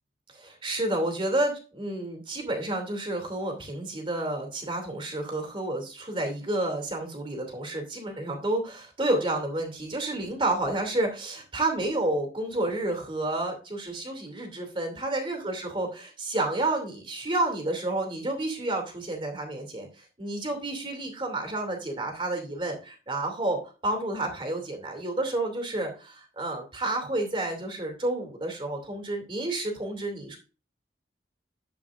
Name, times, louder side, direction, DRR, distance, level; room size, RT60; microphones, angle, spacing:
voice 1, 0.3-30.4, right 2 dB, 30° right, 3 dB, 2.7 m, -30 dB
12.0 x 8.4 x 2.5 m, 0.33 s
head